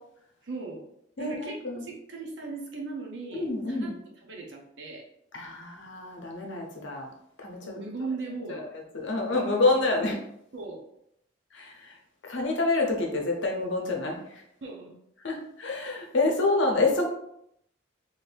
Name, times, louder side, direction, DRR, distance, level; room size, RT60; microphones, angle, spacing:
voice 1, 0.4-0.8 1.2-3.9 4.2-5.1 7.6-8.7 9.3-9.7 10.5-10.8 14.6-14.9, right 3 dB, 60° right, 0 dB, 0.8 m, -38 dB
voice 2, 1.2-1.8 3.3-3.9 5.3-7.1 7.4-7.8 8.6-8.7 8.9-10.2 11.5-12.0 12.2-14.4 15.2-17.1, left 3 dB, 65° left, 0 dB, 0.7 m, -27 dB
3.0 x 2.6 x 3.3 m, 0.75 s
head